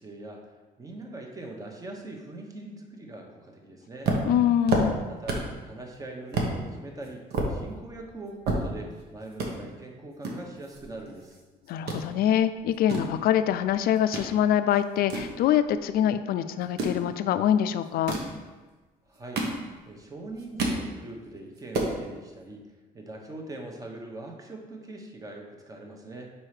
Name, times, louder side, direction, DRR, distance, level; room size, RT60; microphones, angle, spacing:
voice 1, 0.0-4.2 5.1-11.4 19.1-19.5 19.8-22.6 22.9-26.3, right 2 dB, 20° right, 1 dB, 1.0 m, -42 dB
sound 1, 4.0-5.6 5.9-6.0 6.3-6.5 7.0-9.0 9.3-9.5 10.2-11.4 11.7-12.0 12.6-14.3 14.7-16.0 16.6-17.0 17.9-18.4 19.0-20.0 20.3-20.8 21.2-21.3 21.6-22.0, right 2 dB, 70° right, 1.1 m, -30 dB
voice 2, 4.2-5.0 11.7-18.1, left 10 dB, 60° left, 11 dB, 0.4 m, -24 dB
4.6 x 4.2 x 4.8 m, 1.3 s
cardioid pair, 110°, 17 cm